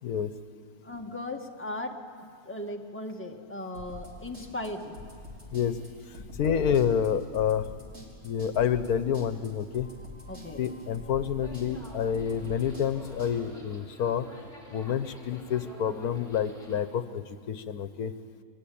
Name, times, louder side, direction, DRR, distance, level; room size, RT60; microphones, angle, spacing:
voice 1, 0.0-0.3 5.5-5.8 6.1-7.7 8.2-9.9 10.6-14.3 14.7-18.1, left 8 dB, 80° left, 11 dB, 1.3 m, -28 dB
voice 2, 0.8-2.0 2.5-5.1 10.3-10.7, left 1 dB, 10° left, 0 dB, 1.8 m, -37 dB
sound 1, 3.7-13.3, left 2 dB, 65° right, 4.2 m, -45 dB
sound 2, 11.4-16.8, equal, 25° left, 5.5 m, -48 dB
29.0 x 23.0 x 8.6 m, 2.1 s
omnidirectional pair, 1.6 m